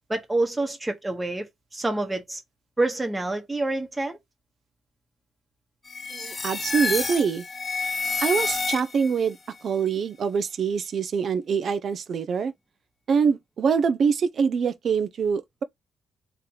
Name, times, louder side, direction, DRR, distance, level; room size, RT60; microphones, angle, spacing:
voice 1, 0.1-2.4 2.8-4.2, right 2 dB, 15° right, 1.2 m, -27 dB
sound 1, 5.9-9.2, left 4 dB, 30° left, 0.9 m, -29 dB
voice 2, 6.1-7.4 8.2-9.4 9.6-12.5 13.1-15.6, right 6 dB, 55° right, 0.5 m, -24 dB
3.3 x 2.9 x 3.8 m
cardioid pair, 90°, 0 cm